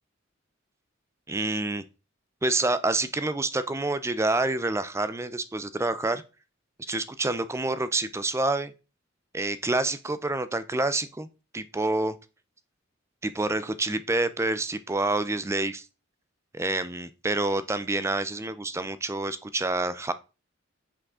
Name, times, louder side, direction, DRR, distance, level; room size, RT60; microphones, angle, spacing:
voice 1, 1.3-1.8 2.4-6.2 6.9-8.7 9.3-11.3 11.5-12.2 13.2-15.9 16.5-20.1, right 2 dB, 15° right, 0.5 m, -27 dB
6.5 x 5.0 x 3.7 m
head